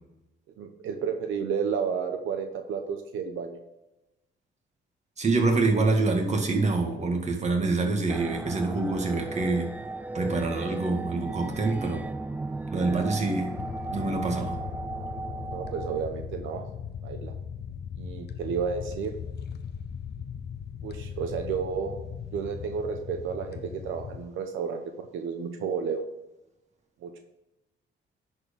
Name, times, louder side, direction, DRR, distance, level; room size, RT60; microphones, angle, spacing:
voice 1, 0.6-3.6 15.5-16.6 17.0-17.3 18.0-19.1 20.8-22.0 22.3-24.8 25.1-26.0 27.0-27.2, right 6 dB, 80° right, 5 dB, 0.9 m, -31 dB
voice 2, 5.2-9.7 10.1-12.0 12.7-13.5 13.9-14.6, right 3 dB, 35° right, 2 dB, 2.0 m, -26 dB
sound 1, 8.1-16.0, right 2 dB, 10° right, 0.4 m, -36 dB
sound 2, 13.5-24.3, left 7 dB, 55° left, 0.7 m, -38 dB
10.5 x 4.5 x 5.4 m, 0.97 s
cardioid pair, 90°, 20 cm